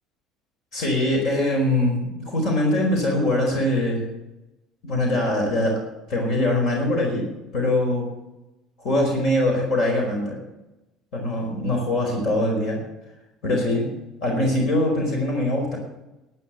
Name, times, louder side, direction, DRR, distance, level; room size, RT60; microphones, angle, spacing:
voice 1, 0.7-4.0 4.8-5.8 6.1-8.1 8.8-10.4 11.1-12.8 13.4-13.9 14.2-15.8, left 1 dB, 60° left, 1 dB, 4.6 m, -22 dB
12.0 x 9.1 x 8.3 m, 0.97 s
supercardioid pair, 100°, 0 cm